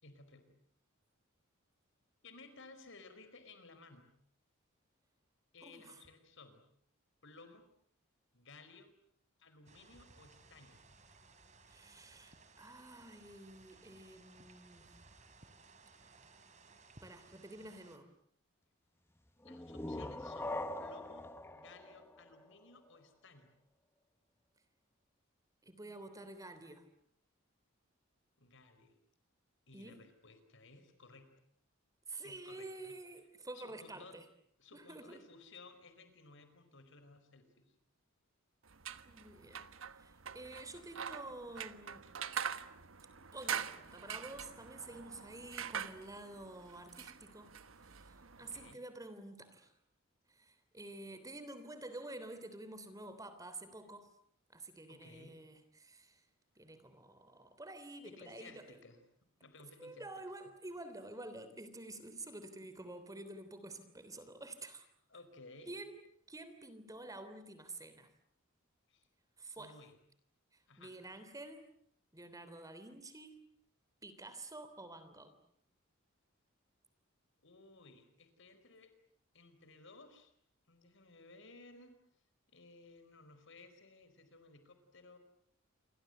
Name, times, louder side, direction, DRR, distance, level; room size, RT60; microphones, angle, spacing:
voice 1, 0.0-0.6 2.2-4.1 5.5-6.6 7.2-7.7 8.3-8.9 9.4-10.8 19.4-23.5 28.4-28.9 29.7-31.3 32.2-33.0 33.5-34.2 34.6-37.7 48.4-48.8 54.9-55.4 58.0-59.0 59.4-60.1 65.1-65.8 68.9-69.1 69.6-70.0 70.7-70.9 77.4-78.9 79.3-80.3 80.7-82.0 82.5-85.2, left 3 dB, 65° left, 10 dB, 4.9 m, -58 dB
voice 2, 5.6-6.0 11.7-14.9 17.0-18.1 25.6-26.9 29.7-30.0 32.1-34.2 34.7-35.2 39.0-39.7 40.0-42.1 43.3-47.6 47.9-49.7 50.3-54.1 54.5-56.2 56.6-58.6 59.8-64.9 65.7-66.0 66.3-68.1 69.4-69.8 70.8-71.7 72.1-73.4 74.0-75.3, right 2 dB, 15° right, 11 dB, 3.3 m, -49 dB
sound 1, 9.7-18.0, right 3 dB, 35° right, 3.4 m, -61 dB
sound 2, 19.4-23.0, left 1 dB, 10° left, 1.4 m, -43 dB
sound 3, 38.7-48.7, right 7 dB, 70° right, 1.3 m, -44 dB
28.5 x 25.0 x 8.0 m, 0.66 s
head